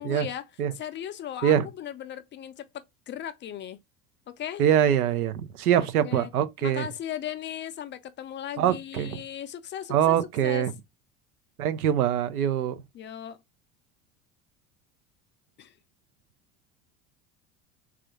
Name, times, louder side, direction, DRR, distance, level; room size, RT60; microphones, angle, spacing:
voice 1, 0.0-0.5 0.7-3.8 4.3-4.6 5.7-6.3 6.6-10.7 12.9-13.4 15.6-15.7, left 10 dB, 30° left, 0.4 m, -37 dB
voice 2, 4.6-6.9 8.6-9.2 9.9-10.7 11.6-12.8, right 10 dB, 85° right, 0.5 m, -24 dB
3.4 x 2.4 x 3.7 m
hypercardioid pair, 70°, 43 cm